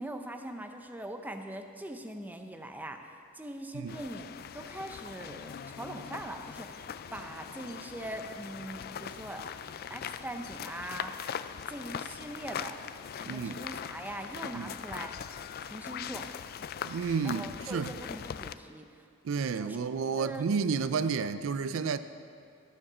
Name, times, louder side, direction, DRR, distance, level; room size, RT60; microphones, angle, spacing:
voice 1, 0.0-4.3 4.5-9.4 9.9-11.2 11.7-12.8 13.2-15.1 15.6-16.3 17.2-19.1 19.5-19.8 20.1-20.5, right 1 dB, 10° right, 5 dB, 0.6 m, -42 dB
sound 1, 3.9-18.5, left 8 dB, 45° left, 0.3 m, -41 dB
voice 2, 13.3-13.6 14.5-14.7 16.8-17.9 19.2-22.0, right 5 dB, 65° right, 12 dB, 0.4 m, -31 dB
12.5 x 7.2 x 6.2 m, 2.4 s
head